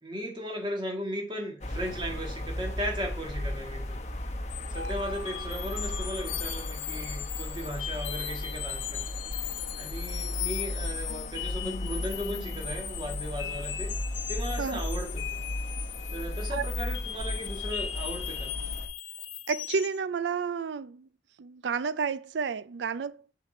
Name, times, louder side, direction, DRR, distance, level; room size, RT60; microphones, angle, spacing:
voice 1, 0.0-4.0 4.7-9.0 9.7-13.9 14.3-15.4 16.1-18.6, equal, 25° right, 1.7 m, -36 dB
sound 1, 1.6-18.9, left 1 dB, 40° left, 1.0 m, -35 dB
sound 2, 4.5-20.0, left 10 dB, 85° left, 0.6 m, -38 dB
voice 2, 19.5-21.1 21.4-23.3, right 5 dB, 70° right, 0.4 m, -31 dB
6.5 x 4.9 x 4.3 m
head